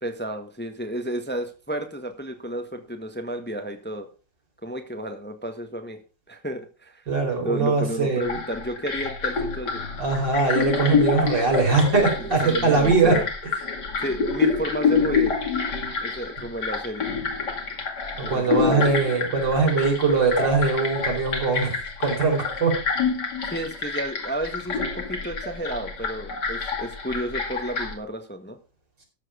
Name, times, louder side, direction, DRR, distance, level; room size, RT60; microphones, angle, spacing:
voice 1, 0.0-4.1 4.6-6.0 6.3-7.0 7.4-9.8 12.4-13.2 14.0-15.3 16.0-17.1 18.2-18.9 23.5-28.6, right 1 dB, 5° left, 6 dB, 1.3 m, -32 dB
voice 2, 7.1-8.2 10.0-13.1 18.2-22.7, right 4 dB, 80° right, 1 dB, 5.2 m, -21 dB
sound 1, 8.2-27.9, left 5 dB, 65° left, 3.0 m, -27 dB
13.5 x 7.7 x 5.0 m, 0.33 s
omnidirectional pair, 1.9 m